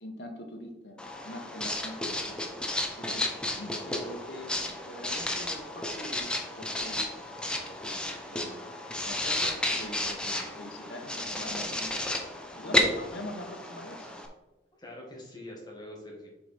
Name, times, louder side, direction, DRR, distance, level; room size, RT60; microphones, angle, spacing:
voice 1, 0.0-2.4 2.9-3.0 3.6-7.2 7.7-12.1 12.5-14.1, left 1 dB, 75° left, 3 dB, 1.3 m, -43 dB
Writing, 1.0-14.3, left 1 dB, 5° left, 0.8 m, -32 dB
voice 2, 14.8-16.3, left 1 dB, 25° left, -2 dB, 2.0 m, -45 dB
6.8 x 4.9 x 4.4 m, 1.0 s
head